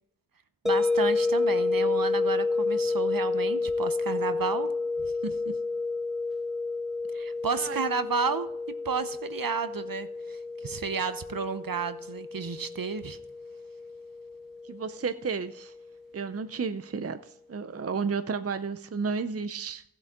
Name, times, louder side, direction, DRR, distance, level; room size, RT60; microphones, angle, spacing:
voice 1, 0.6-4.7 5.0-5.4 7.1-8.5 8.8-13.2, right 5 dB, 60° right, 11 dB, 0.9 m, -32 dB
sound 1, 0.7-15.6, left 3 dB, ahead, 0.9 m, -30 dB
voice 2, 7.5-7.8 14.6-15.7 16.1-19.8, right 5 dB, 40° right, 10 dB, 0.6 m, -32 dB
15.0 x 8.0 x 3.7 m, 0.78 s
wide cardioid pair, 45°, 38 cm